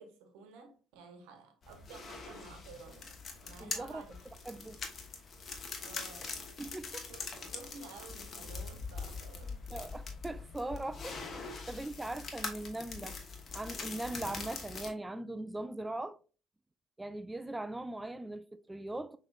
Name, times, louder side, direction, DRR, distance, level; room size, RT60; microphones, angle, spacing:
voice 1, 0.0-4.2 4.5-4.7 5.8-6.5 7.1-9.6, right 4 dB, 80° right, 0.9 m, -53 dB
sound 1, 1.6-14.9, left 4 dB, 45° left, 1.1 m, -43 dB
voice 2, 3.6-4.0 4.5-4.8 6.6-7.1 9.7-13.2 13.5-16.2 17.0-19.2, right 2 dB, 15° right, 0.3 m, -40 dB
6.2 x 3.0 x 2.4 m
hypercardioid pair, 65°, 0 cm